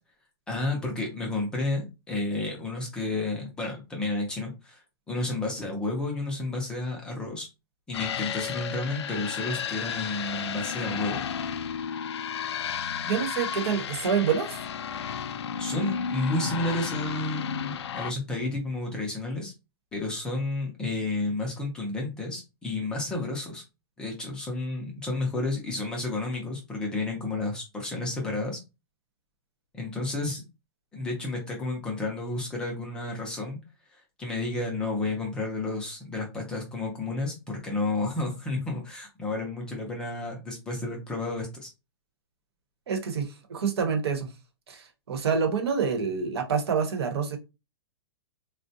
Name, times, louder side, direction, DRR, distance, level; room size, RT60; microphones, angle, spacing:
voice 1, 0.5-4.8 5.1-7.5 7.9-11.2 15.6-19.5 19.9-23.6 24.0-28.6 29.7-30.4 30.9-33.6 33.9-41.7, left 2 dB, 5° left, 0 dB, 0.4 m, -31 dB
sound 1, 7.9-18.1, left 7 dB, 90° left, 0.4 m, -33 dB
voice 2, 13.0-14.6 42.9-44.3 44.7-47.4, right 6 dB, 75° right, 6 dB, 1.0 m, -27 dB
3.7 x 2.1 x 2.7 m, 0.27 s
hypercardioid pair, 170°, 14 cm